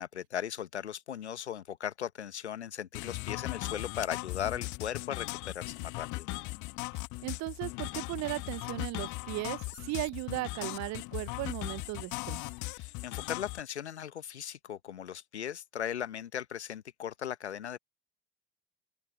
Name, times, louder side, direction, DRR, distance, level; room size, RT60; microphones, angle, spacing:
voice 1, 0.0-6.3 12.7-17.8, left 9 dB, 85° left, 1.3 m, -38 dB
sound 1, 2.9-13.6, left 23 dB, 65° left, 2.0 m, -38 dB
voice 2, 7.2-12.4, right 20 dB, 55° right, 0.7 m, -37 dB
open air
figure-of-eight pair, 55°, 33 cm